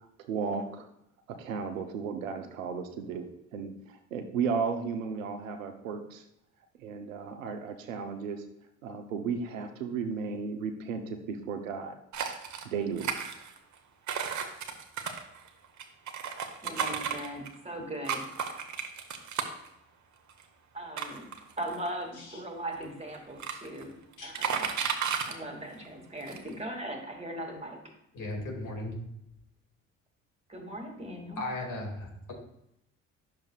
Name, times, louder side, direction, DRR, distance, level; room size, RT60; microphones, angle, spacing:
voice 1, 0.2-0.9 1.3-3.3 3.5-6.2 6.8-8.4 8.8-12.0 12.6-13.1, right 5 dB, 85° right, 7 dB, 0.8 m, -34 dB
sound 1, 12.1-12.6 13.0-13.7 14.1-17.6 18.0-19.7 20.3-20.4 21.0-22.0 22.8-22.9 23.1-23.8 24.1-25.3 25.8-25.9 26.2-26.5, right 7 dB, 50° right, 1.1 m, -33 dB
voice 2, 16.6-18.2 20.7-21.3 21.6-23.9 24.2-24.7 25.3-27.8 30.5-31.4, right 1 dB, 15° right, 2 dB, 2.2 m, -39 dB
voice 3, 28.1-29.0 31.4-32.3, left 2 dB, 50° left, 0 dB, 2.4 m, -37 dB
10.5 x 6.6 x 2.4 m, 0.81 s
hypercardioid pair, 50°, 38 cm